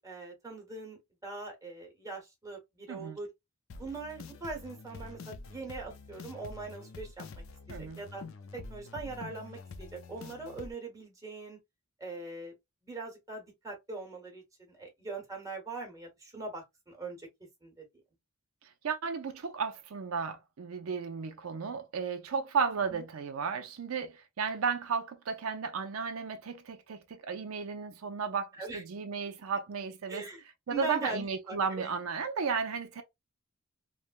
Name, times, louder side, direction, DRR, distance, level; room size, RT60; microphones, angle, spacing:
voice 1, 0.0-3.3 3.8-7.4 7.8-8.2 8.5-11.6 12.0-12.5 12.8-17.2 17.6-17.8 22.9-23.0 28.5-28.8 30.1-30.4 30.7-31.9, right 3 dB, 15° right, 1.2 m, -41 dB
voice 2, 2.9-3.2 7.7-8.0 18.8-30.3 30.7-33.0, right 5 dB, 80° right, 0.5 m, -34 dB
sound 1, 3.7-10.7, left 3 dB, 65° left, 0.4 m, -47 dB
3.3 x 2.1 x 2.4 m
head